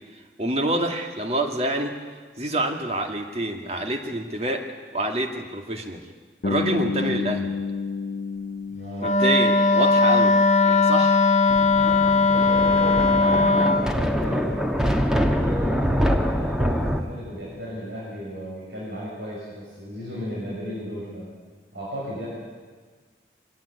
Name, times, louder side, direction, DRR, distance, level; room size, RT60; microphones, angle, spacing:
voice 1, 0.1-1.9 2.4-4.7 4.9-6.0 6.4-7.5 9.0-10.4 10.6-11.2, right 1 dB, 35° right, 4 dB, 2.2 m, -27 dB
Bass guitar, 6.4-10.4, left 4 dB, 60° left, 0.9 m, -30 dB
voice 2, 8.7-9.1 12.2-14.6 15.1-21.3 21.7-22.3, equal, 80° right, -6 dB, 6.6 m, -35 dB
Wind instrument woodwind instrument, 9.0-13.9, left 3 dB, 35° left, 1.7 m, -19 dB
Thunder, 11.5-17.0, equal, 5° right, 1.3 m, -24 dB
24.5 x 16.5 x 9.6 m, 1.5 s
head